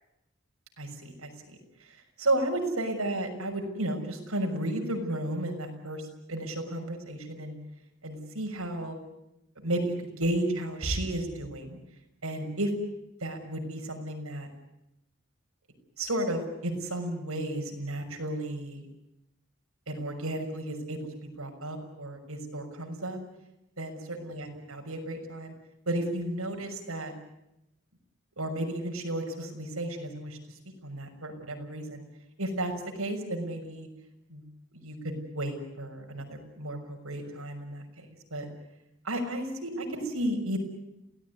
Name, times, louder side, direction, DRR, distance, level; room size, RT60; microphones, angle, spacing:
voice 1, 0.8-1.9 2.2-7.6 8.0-8.9 9.6-11.8 12.2-12.7 13.2-14.5 16.0-18.9 19.9-23.2 23.8-25.5 25.9-27.1 28.4-30.4 30.8-32.0 32.4-33.9 34.3-34.5 34.7-38.0 38.3-38.5 39.0-40.6, right 1 dB, 85° right, 4 dB, 6.2 m, -33 dB
28.5 x 18.0 x 9.7 m, 0.91 s
head